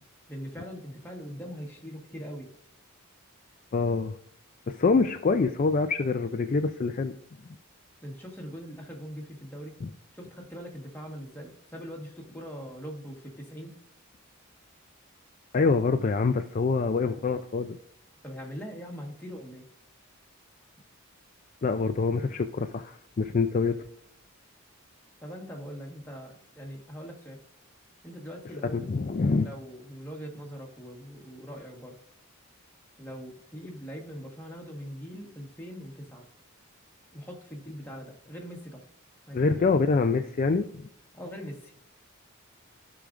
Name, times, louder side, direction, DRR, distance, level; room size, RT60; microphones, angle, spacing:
voice 1, 0.3-2.5 4.9-5.0 8.0-9.8 10.1-13.7 18.2-19.6 25.2-27.4 28.0-28.9 29.4-32.0 33.0-36.2 37.1-38.8 39.3-39.7 41.1-41.7, equal, 10° left, -1 dB, 1.4 m, -41 dB
voice 2, 3.7-4.1 4.7-7.2 9.8-9.9 15.5-17.8 21.6-23.8 28.7-29.5 39.3-40.9, left 4 dB, 35° left, 6 dB, 0.3 m, -25 dB
14.5 x 5.0 x 2.5 m, 0.74 s
head